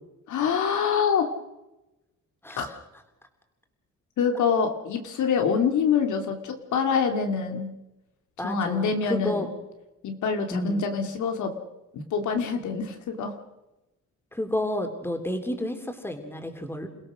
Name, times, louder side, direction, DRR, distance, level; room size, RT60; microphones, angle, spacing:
voice 1, 0.3-1.3 2.6-2.7 4.2-7.7 8.4-9.5 10.0-11.5 11.9-13.3, left 6 dB, 75° left, 5 dB, 2.8 m, -25 dB
voice 2, 8.4-9.5 10.5-10.8 14.3-16.9, left 1 dB, 5° left, 5 dB, 3.7 m, -31 dB
28.5 x 17.0 x 6.4 m, 0.99 s
cardioid pair, 90°, 30 cm